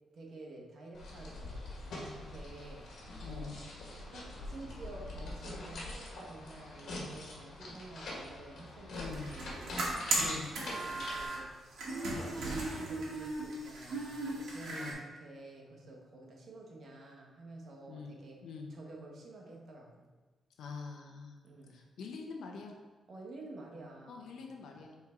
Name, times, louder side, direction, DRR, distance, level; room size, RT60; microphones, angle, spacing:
voice 1, 0.1-3.6 4.1-18.4 18.7-20.1 21.4-21.8 23.1-24.4, right 2 dB, 50° right, 0 dB, 1.2 m, -50 dB
sound 1, 0.9-11.3, left 1 dB, 65° left, 1.8 m, -44 dB
voice 2, 3.2-3.6 8.9-9.3 10.2-10.5 14.7-15.0 17.9-18.7 20.6-21.4 21.7-22.8 24.1-24.9, left 4 dB, 80° left, 2 dB, 1.0 m, -45 dB
sound 2, 8.9-11.4 11.7-14.9, right 2 dB, 90° right, 2.0 m, -36 dB
6.0 x 4.6 x 4.5 m, 1.3 s
wide cardioid pair, 170°, 0 cm